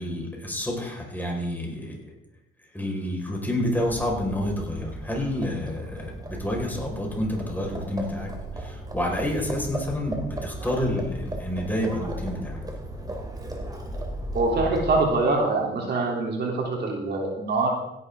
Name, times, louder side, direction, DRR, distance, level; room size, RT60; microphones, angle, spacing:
voice 1, 0.0-2.0 2.7-12.6, left 1 dB, 10° left, -1 dB, 5.1 m, -29 dB
Livestock farm animals working animals, 3.6-15.2, right 1 dB, 20° right, 2.9 m, -36 dB
voice 2, 14.3-17.7, right 3 dB, 55° right, -1 dB, 3.4 m, -24 dB
16.5 x 11.0 x 3.8 m, 0.84 s
cardioid pair, 90°, 20 cm